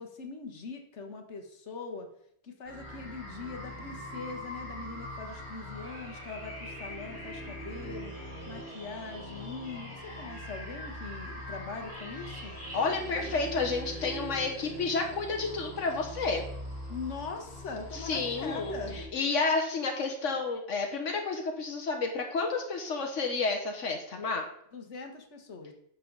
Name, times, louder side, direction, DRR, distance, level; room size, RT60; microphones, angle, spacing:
voice 1, 0.0-2.1 2.4-8.1 8.5-12.5 16.9-19.0 24.7-25.7, left 4 dB, 70° left, 4 dB, 1.6 m, -41 dB
sound 1, 2.7-19.0, equal, 60° right, 4.3 m, -42 dB
voice 2, 12.7-16.4 17.9-24.4, left 4 dB, 85° left, 3 dB, 1.5 m, -31 dB
10.5 x 6.9 x 4.0 m, 0.71 s
omnidirectional pair, 1.2 m